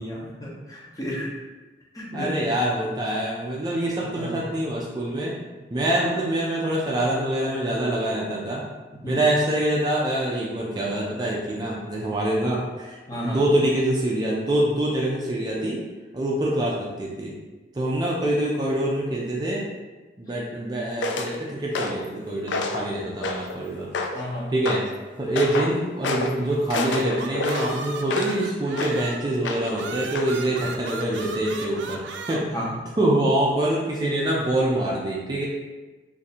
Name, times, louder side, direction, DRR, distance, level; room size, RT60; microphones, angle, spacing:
voice 1, 0.0-1.3 1.9-2.3 4.1-4.4 8.9-9.2 13.1-13.4 24.1-24.5 32.5-32.8, equal, 20° left, -5 dB, 0.8 m, -32 dB
voice 2, 2.1-5.4 5.7-8.6 9.1-15.8 16.1-17.3 17.7-19.6 20.2-23.9 24.5-24.8 25.2-32.0 32.3-32.6 33.0-35.5, right 1 dB, 25° right, -4 dB, 0.4 m, -25 dB
sound 1, 21.0-21.3 21.7-22.1 22.5-22.9 23.2-23.6 23.9-24.3 24.7-24.9 25.4-25.7 26.0-26.3 26.7-28.4 28.7-29.0 29.4-29.8 30.2-30.3, left 3 dB, 90° left, 0.4 m, -29 dB
sound 2, 26.5-29.3 29.7-32.4, right 4 dB, 85° right, 0.4 m, -36 dB
2.6 x 2.6 x 4.1 m, 1.2 s
head